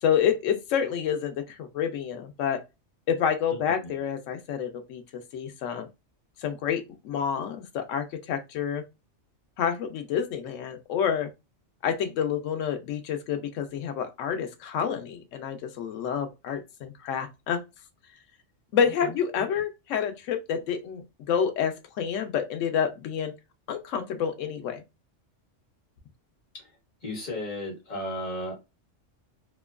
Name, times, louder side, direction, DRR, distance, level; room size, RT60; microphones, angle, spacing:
voice 1, 0.0-2.6 3.1-5.9 6.4-8.8 9.6-11.3 11.8-17.6 18.7-23.3 23.7-24.8, left 8 dB, 85° left, 1.0 m, -28 dB
voice 2, 27.0-28.6, left 1 dB, 40° left, 1.4 m, -34 dB
2.9 x 2.2 x 2.3 m
omnidirectional pair, 1.3 m